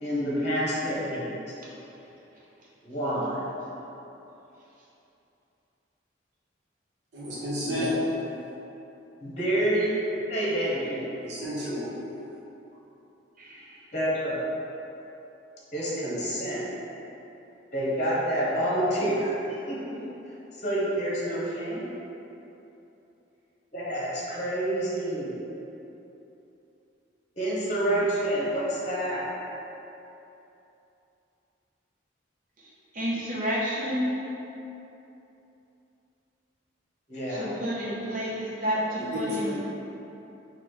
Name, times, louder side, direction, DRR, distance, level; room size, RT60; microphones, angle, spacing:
voice 1, 0.0-1.3 2.8-3.4 7.6-7.9 9.2-9.9 10.3-11.1 13.9-14.4 15.7-16.6 17.7-19.3 19.6-20.0 20.6-21.8 23.7-25.3 27.4-29.2 37.1-37.5, right 1 dB, 40° left, -7 dB, 1.0 m, -28 dB
voice 2, 7.1-8.0 11.2-11.9 39.0-39.5, left 1 dB, 65° right, -8 dB, 1.1 m, -31 dB
voice 3, 13.4-13.9 27.8-28.4 32.6-34.2 37.3-39.5, equal, 45° right, -6 dB, 0.9 m, -31 dB
4.0 x 2.4 x 4.7 m, 2.9 s
head